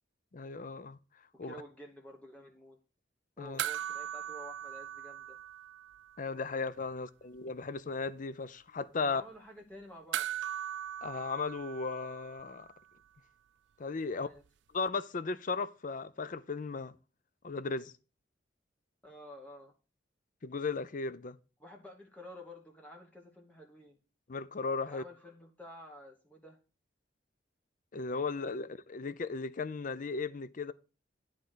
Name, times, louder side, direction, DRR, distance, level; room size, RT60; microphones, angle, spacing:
voice 1, 0.3-1.0 1.4-1.5 3.4-3.6 6.2-9.2 11.0-12.7 13.8-14.3 14.7-17.0 17.4-17.9 20.4-21.4 24.3-25.0 27.9-30.7, left 4 dB, 45° left, 0.5 m, -36 dB
voice 2, 1.4-2.8 3.4-5.4 9.0-10.3 14.1-14.4 19.0-19.7 21.6-24.0 24.9-26.6, equal, 10° left, 1.1 m, -51 dB
sound 1, 3.6-6.3 6.5-6.6 10.1-12.7 14.9-15.0, right 11 dB, 85° right, 0.4 m, -39 dB
10.5 x 3.9 x 6.2 m
head